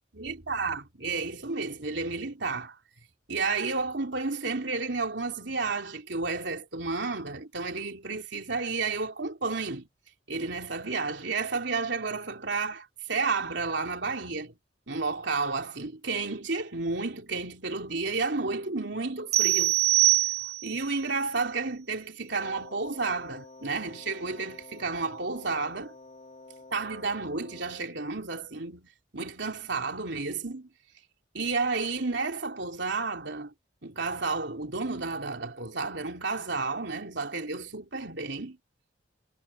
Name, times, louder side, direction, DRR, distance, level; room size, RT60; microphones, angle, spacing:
voice 1, 0.1-2.8 3.3-9.9 10.3-14.6 14.9-19.8 20.4-26.0 26.7-28.9 29.1-30.7 31.3-33.5 33.8-38.6, right 4 dB, 65° right, 3.5 m, -31 dB
sound 1, 19.3-20.8, right 17 dB, 35° right, 0.8 m, -23 dB
Wind instrument woodwind instrument, 22.3-28.0, left 2 dB, 40° left, 2.9 m, -50 dB
head